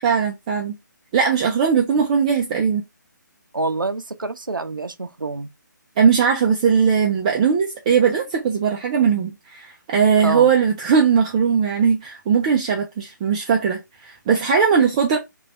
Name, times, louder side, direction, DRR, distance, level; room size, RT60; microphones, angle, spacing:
voice 1, 0.0-0.7 1.1-2.8 6.0-15.2, right 6 dB, 20° right, 0.4 m, -19 dB
voice 2, 3.5-5.5 10.2-10.5, right 2 dB, 90° right, 0.4 m, -26 dB
3.2 x 2.2 x 3.7 m
figure-of-eight pair, 140°, 11 cm